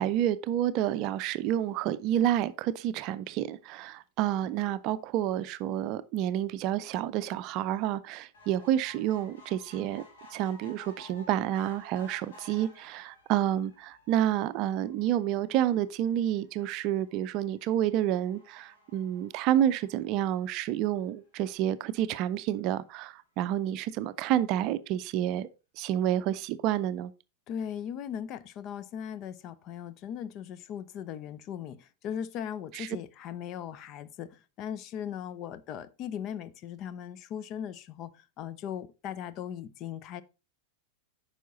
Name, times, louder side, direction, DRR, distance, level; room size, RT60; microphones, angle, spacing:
voice 1, 0.0-10.0 10.3-25.5 25.8-27.1 32.7-32.9, right 11 dB, 40° right, 0.5 m, -29 dB
sound 1, 8.3-20.9 21.5-21.6 21.9-22.0 22.2-22.3, left 1 dB, 60° left, 2.7 m, -55 dB
voice 2, 27.5-40.2, left 9 dB, 35° left, 0.6 m, -38 dB
9.2 x 5.6 x 3.9 m
figure-of-eight pair, 90°, 0 cm